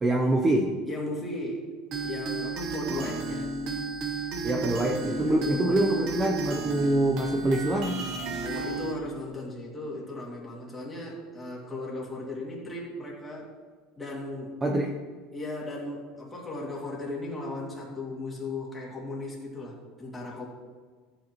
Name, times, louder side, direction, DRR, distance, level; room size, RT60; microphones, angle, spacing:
voice 1, 0.0-0.7 2.9-3.1 4.4-8.0 14.6-14.9, right 1 dB, 15° right, 2 dB, 0.6 m, -25 dB
voice 2, 0.9-1.7 2.0-3.5 5.2-5.8 8.4-13.5 14.0-14.6 15.3-20.5, left 2 dB, 10° left, -4 dB, 2.3 m, -36 dB
sound 1, 1.9-8.9, right 3 dB, 40° right, 1.1 m, -33 dB
14.5 x 8.4 x 3.0 m, 1.5 s
cardioid pair, 170°, 0 cm